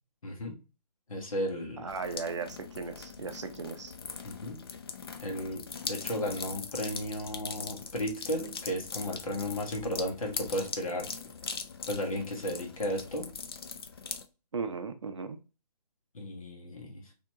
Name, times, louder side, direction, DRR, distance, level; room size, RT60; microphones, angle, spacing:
voice 1, 0.2-0.6 1.1-1.8 4.2-4.6 5.2-11.1 11.9-13.3 16.1-17.0, equal, 55° left, 1 dB, 1.4 m, -34 dB
voice 2, 1.8-3.9 14.5-15.4, right 5 dB, 45° right, 7 dB, 0.5 m, -37 dB
sound 1, 1.9-14.3, left 5 dB, 35° left, 0.4 m, -41 dB
4.3 x 2.9 x 2.7 m, 0.31 s
figure-of-eight pair, 145°, 21 cm